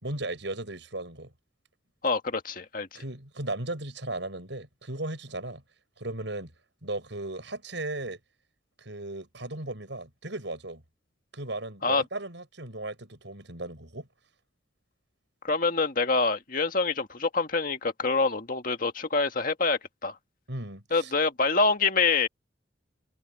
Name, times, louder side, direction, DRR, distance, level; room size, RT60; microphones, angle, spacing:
voice 1, 0.0-1.3 2.9-5.6 6.0-6.5 6.8-8.2 8.8-10.8 11.3-14.1 20.5-21.1, right 2 dB, 70° right, 6.3 m, -36 dB
voice 2, 2.0-3.0 11.8-12.0 15.4-20.2 20.9-22.3, left 4 dB, 45° left, 1.8 m, -26 dB
head